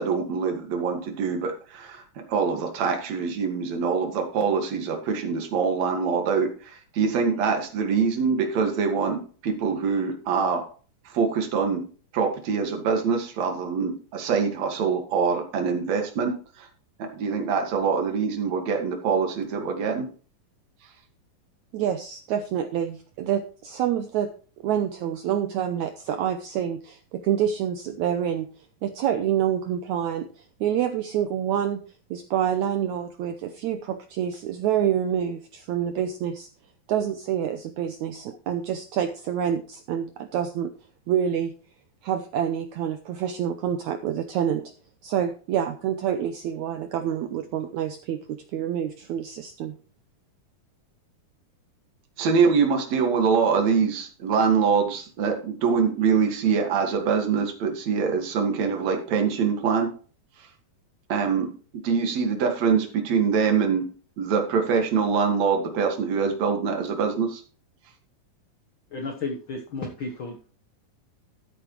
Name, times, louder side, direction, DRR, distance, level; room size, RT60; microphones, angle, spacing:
voice 1, 0.0-2.0 2.3-10.6 11.1-11.8 12.1-16.7 17.0-20.1 52.2-59.9 61.1-63.8 64.2-67.4, right 5 dB, 55° right, 4 dB, 2.8 m, -24 dB
voice 2, 21.7-24.3 24.6-28.5 28.8-31.8 32.1-36.5 36.9-40.7 41.1-41.5 42.0-44.7 45.0-49.8, right 9 dB, 90° right, 7 dB, 1.6 m, -27 dB
voice 3, 68.9-70.4, left 3 dB, 85° left, 3 dB, 1.1 m, -33 dB
13.5 x 8.7 x 3.1 m, 0.39 s
omnidirectional pair, 4.2 m